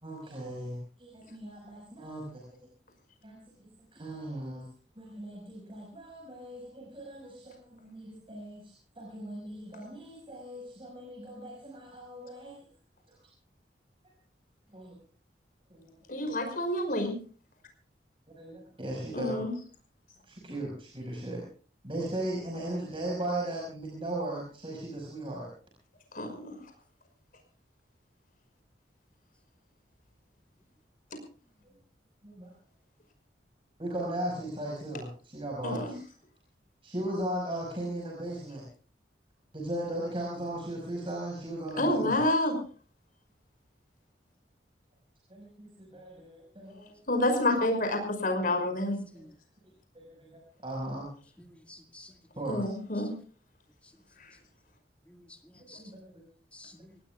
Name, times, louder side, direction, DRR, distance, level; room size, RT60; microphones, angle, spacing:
voice 1, 0.0-2.6 3.2-4.7 5.0-12.6 13.1-13.2 14.7-14.9 15.7-16.0 18.3-19.4 20.2-21.4 21.8-25.5 31.6-31.7 32.2-32.5 33.8-36.0 36.8-38.7 39.5-42.2 45.3-47.0 49.1-49.2 49.9-51.1 52.4-52.7 55.6-56.2, right 1 dB, 30° right, -3 dB, 5.4 m, -37 dB
voice 2, 16.1-17.1 19.1-19.5 26.1-26.5 31.1-31.2 35.6-35.9 41.8-42.6 47.1-48.9 52.5-53.1, left 1 dB, 55° left, 5 dB, 5.6 m, -28 dB
voice 3, 51.4-52.2 53.0-53.1 55.1-55.8 56.5-57.0, left 1 dB, 10° left, 3 dB, 1.9 m, -52 dB
26.5 x 18.0 x 2.4 m, 0.41 s
head